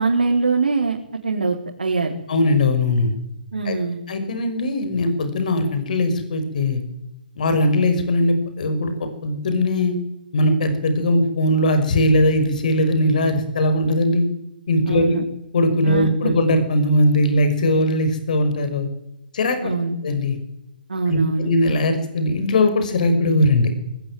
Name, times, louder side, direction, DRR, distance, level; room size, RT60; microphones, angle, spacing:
voice 1, 0.0-2.1 3.5-4.0 14.9-15.2 15.8-16.3 19.6-20.0 20.9-21.5, right 4 dB, 75° right, 0 dB, 3.8 m, -23 dB
voice 2, 2.3-3.1 3.6-3.8 4.1-6.8 7.4-8.9 9.2-9.9 10.3-14.3 14.7-15.2 15.5-18.9 19.3-19.8 20.0-20.4 21.1-23.7, left 1 dB, 55° left, 8 dB, 5.8 m, -19 dB
21.5 x 19.5 x 9.4 m, 0.88 s
figure-of-eight pair, 140°, 5 cm